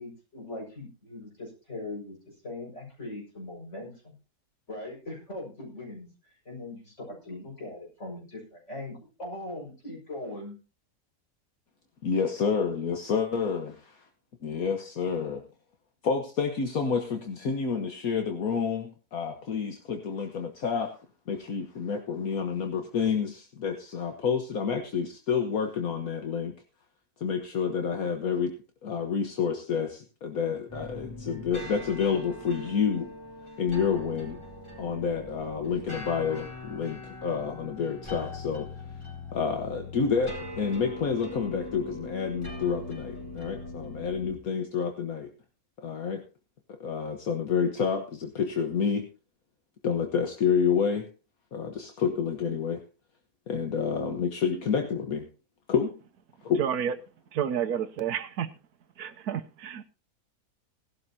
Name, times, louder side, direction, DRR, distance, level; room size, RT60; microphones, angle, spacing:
voice 1, 0.0-2.2 2.4-4.1 4.7-6.1 6.4-10.6, left 2 dB, 50° left, -1 dB, 6.4 m, -40 dB
voice 2, 12.0-14.1 14.4-15.4 16.0-20.9 21.3-26.6 27.2-33.1 33.6-34.4 34.8-38.7 39.3-45.3 45.8-46.2 46.8-49.1 49.8-51.1 51.5-52.8 53.5-55.3 55.7-55.9 56.4-56.6, left 6 dB, 65° left, 4 dB, 1.7 m, -29 dB
sound 1, 30.7-44.4, left 2 dB, 20° left, 4.2 m, -41 dB
voice 3, 56.6-56.9 57.3-58.5 59.0-59.8, right 9 dB, 80° right, 10 dB, 1.3 m, -30 dB
18.0 x 12.0 x 2.8 m, 0.32 s
omnidirectional pair, 1.6 m